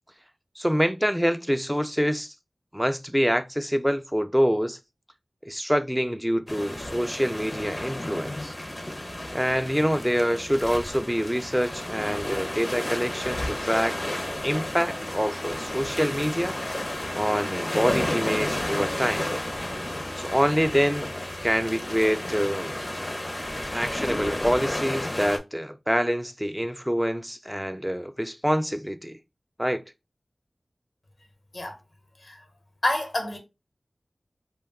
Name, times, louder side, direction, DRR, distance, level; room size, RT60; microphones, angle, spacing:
voice 1, 0.6-2.3 2.7-4.8 5.5-8.5 9.3-14.0 14.4-16.6 17.2-19.3 20.2-21.1 21.4-22.8 23.7-29.2 29.6-29.8, equal, 5° right, 0.3 m, -26 dB
sound 1, 6.5-25.4, left 1 dB, 40° left, 0.6 m, -32 dB
voice 2, 32.8-33.4, left 1 dB, 70° left, 0.8 m, -28 dB
2.2 x 2.2 x 3.4 m
wide cardioid pair, 55°, 0 cm